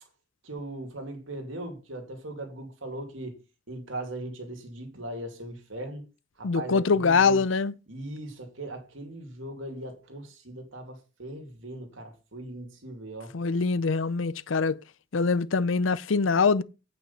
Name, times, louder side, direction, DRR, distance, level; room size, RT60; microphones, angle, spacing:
voice 1, 0.4-3.4 3.7-6.0 6.4-7.4 7.9-13.3, right 1 dB, 85° right, 2.6 m, -39 dB
voice 2, 6.4-7.7 13.3-14.8 15.1-16.6, left 4 dB, 85° left, 0.6 m, -23 dB
9.0 x 5.6 x 5.7 m
head